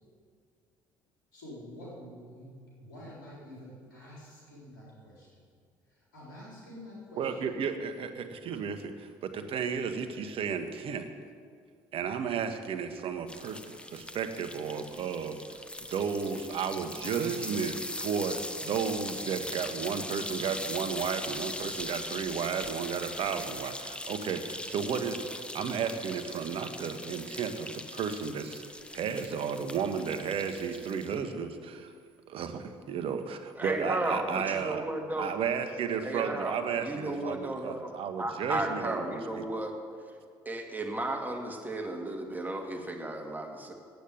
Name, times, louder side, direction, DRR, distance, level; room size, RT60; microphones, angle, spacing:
voice 1, 1.3-2.5 2.8-5.3 6.1-7.6 31.1-31.4, left 1 dB, 90° left, -6 dB, 4.1 m, -47 dB
voice 2, 7.2-11.1 11.9-15.6 15.9-28.6 28.9-31.9 32.3-34.9 35.2-39.5, right 6 dB, 60° right, 8 dB, 1.1 m, -33 dB
sound 1, 13.3-31.2, left 1 dB, 10° left, 0.9 m, -40 dB
voice 3, 33.6-35.3 36.0-36.6 36.8-37.9 38.2-39.7 40.5-43.7, right 1 dB, 15° right, 2 dB, 2.1 m, -34 dB
9.3 x 8.3 x 9.1 m, 2.1 s
hypercardioid pair, 60°, 11 cm